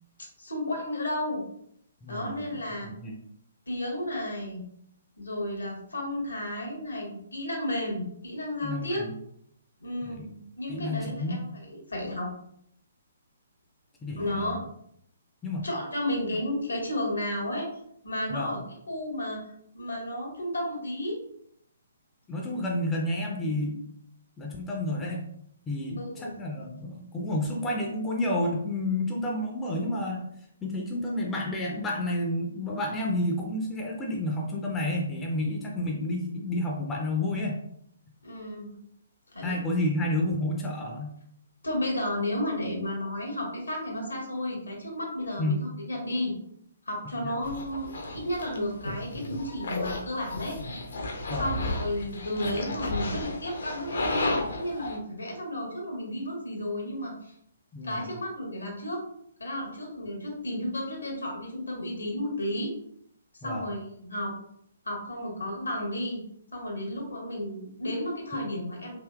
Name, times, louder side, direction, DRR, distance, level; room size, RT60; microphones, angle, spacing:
voice 1, 0.4-1.4 2.1-2.9 3.7-4.6 5.2-9.0 9.8-10.2 10.6-11.4 11.7-12.3 14.2-14.6 15.6-17.7 18.0-18.6 18.9-19.4 19.7-21.2 26.0-26.3 38.2-38.7 39.3-39.6 41.6-46.3 46.8-50.6 51.4-57.3 57.8-59.0 59.4-62.7 63.4-64.3 64.8-66.2 66.5-69.0, left 1 dB, 75° left, 0 dB, 1.1 m, -32 dB
voice 2, 2.0-3.2 8.6-9.2 10.0-10.3 10.7-11.4 14.0-14.6 15.4-15.7 18.3-18.5 22.3-23.8 24.4-25.3 25.7-30.3 30.6-37.6 39.4-41.1 45.4-45.6 47.1-47.3 51.3-51.5 57.7-58.1 63.4-63.7 68.3-68.4, left 1 dB, 15° left, -2 dB, 0.4 m, -30 dB
sound 1, 47.4-55.0, left 2 dB, 60° left, 0.6 m, -33 dB
3.3 x 2.7 x 2.3 m, 0.71 s
figure-of-eight pair, 130°, 0 cm